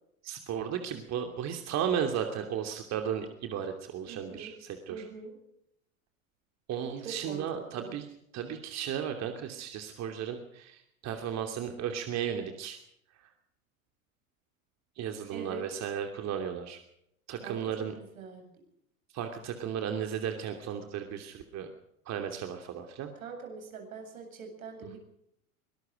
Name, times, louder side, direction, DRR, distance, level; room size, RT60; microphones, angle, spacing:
voice 1, 0.2-5.1 6.7-8.1 8.3-12.8 13.2-13.3 15.0-16.8 17.3-17.9 19.1-21.7 22.0-23.1, right 8 dB, 40° right, 5 dB, 2.9 m, -35 dB
voice 2, 4.1-4.6 4.9-5.4 7.0-7.4 7.7-7.9 15.3-15.7 17.4-18.5 23.2-25.0, right 5 dB, 75° right, 4 dB, 7.9 m, -43 dB
24.0 x 20.5 x 5.2 m, 0.75 s
hypercardioid pair, 85°, 42 cm